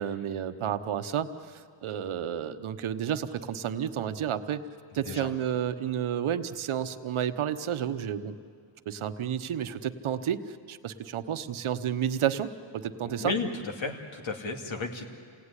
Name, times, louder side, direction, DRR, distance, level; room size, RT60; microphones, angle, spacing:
voice 1, 0.0-4.6 4.9-8.4 8.9-13.3, right 9 dB, 75° right, 10 dB, 1.1 m, -31 dB
voice 2, 13.0-13.5 13.8-15.1, left 4 dB, 65° left, 3 dB, 2.6 m, -33 dB
28.0 x 18.0 x 9.9 m, 2.3 s
wide cardioid pair, 105°, 49 cm